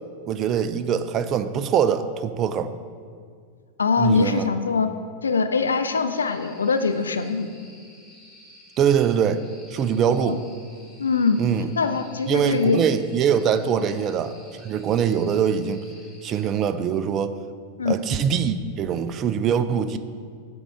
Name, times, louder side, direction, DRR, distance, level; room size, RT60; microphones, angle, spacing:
voice 1, 0.3-2.7 4.0-4.5 8.8-9.4 9.7-10.4 11.4-11.7 12.3-15.8 16.2-17.4 17.9-20.0, right 8 dB, 30° right, 12 dB, 0.3 m, -23 dB
voice 2, 3.8-4.9 5.2-7.5 10.2-10.4 11.0-11.4 11.8-12.8 17.8-18.0, left 4 dB, 70° left, 9 dB, 0.3 m, -22 dB
sound 1, 6.1-16.5, left 1 dB, 15° left, 1.4 m, -51 dB
8.4 x 3.7 x 4.9 m, 2.2 s
figure-of-eight pair, 90°, 0 cm